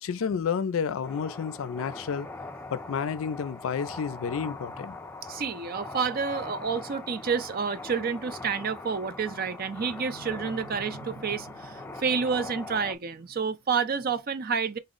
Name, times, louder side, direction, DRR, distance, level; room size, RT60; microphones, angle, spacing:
voice 1, 0.0-2.3 2.7-5.0, left 6 dB, 80° left, 0.4 m, -30 dB
sound 1, 1.0-12.9, left 3 dB, 10° left, 0.4 m, -41 dB
voice 2, 5.3-14.8, right 5 dB, 45° right, 0.5 m, -29 dB
4.1 x 2.0 x 3.7 m
head